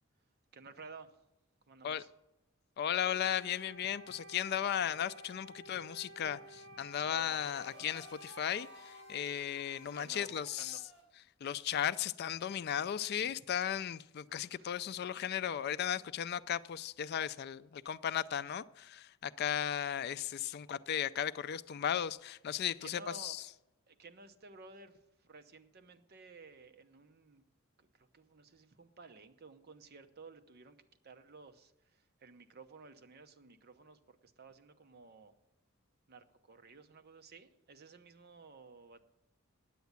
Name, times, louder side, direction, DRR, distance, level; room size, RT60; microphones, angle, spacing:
voice 1, 0.5-1.2 1.6-2.1 3.9-4.0 5.7-5.8 6.3-7.4 7.8-7.9 10.0-10.8 14.5-14.9 22.8-23.4 23.9-27.4 27.8-30.8 31.0-35.3 36.1-39.0, right 4 dB, 50° right, 0.8 m, -55 dB
voice 2, 2.8-6.4 6.8-10.8 11.4-23.4, left 9 dB, 50° left, 0.3 m, -36 dB
Wind instrument woodwind instrument, 2.9-10.7, right 1 dB, 75° right, 1.0 m, -54 dB
sound 1, 7.3-11.0, left 1 dB, 5° right, 4.2 m, -58 dB
9.4 x 8.2 x 8.1 m
head